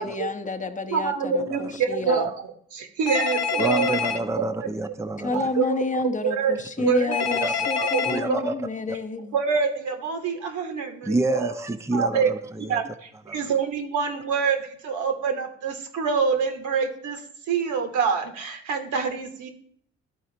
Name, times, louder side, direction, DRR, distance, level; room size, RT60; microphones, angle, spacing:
voice 1, 0.0-2.3 5.2-9.3, left 3 dB, 25° left, 7 dB, 0.8 m, -30 dB
voice 2, 0.9-2.3 2.7-4.0 4.3-4.4 5.3-5.8 6.2-6.5 6.8-7.2 7.7-8.0 8.3-8.5 9.3-11.5 11.9-12.3 12.7-17.2 17.5-19.5, right 6 dB, 75° right, 5 dB, 1.1 m, -26 dB
Telephone, 3.1-4.2 7.1-8.2, left 6 dB, 60° left, 1.0 m, -26 dB
voice 3, 3.6-5.4 6.8-6.9 7.4-7.7 8.1-8.5 11.0-12.8 13.3-13.5, right 2 dB, 10° right, 7 dB, 0.5 m, -28 dB
12.0 x 4.2 x 3.8 m, 0.64 s
supercardioid pair, 55°, 30 cm